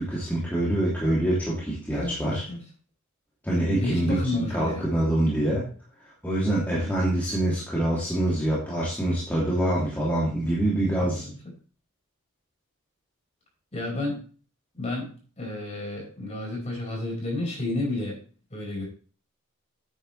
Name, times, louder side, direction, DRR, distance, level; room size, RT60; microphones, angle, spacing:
voice 1, 0.0-2.4 3.4-5.7 6.2-11.3, right 1 dB, 10° left, -7 dB, 2.7 m, -25 dB
voice 2, 1.9-2.6 3.8-4.8 6.8-7.0 11.0-11.4 13.7-14.2 14.7-18.2 18.5-18.8, left 2 dB, 30° left, -2 dB, 5.2 m, -31 dB
10.0 x 9.2 x 3.2 m, 0.40 s
head